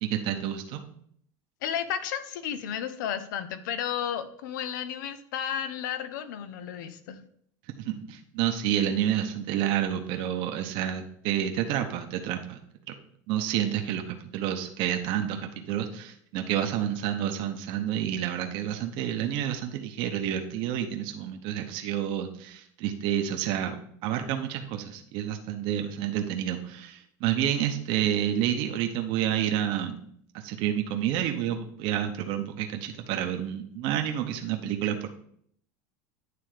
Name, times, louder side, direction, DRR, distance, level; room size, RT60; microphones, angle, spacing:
voice 1, 0.0-0.8 7.8-12.6 12.9-13.0 13.3-23.8 24.0-30.0 30.3-35.1, right 10 dB, 60° right, 5 dB, 0.9 m, -29 dB
voice 2, 1.6-7.2, left 9 dB, 85° left, 11 dB, 0.7 m, -33 dB
9.5 x 3.4 x 4.9 m, 0.64 s
supercardioid pair, 130°, 10 cm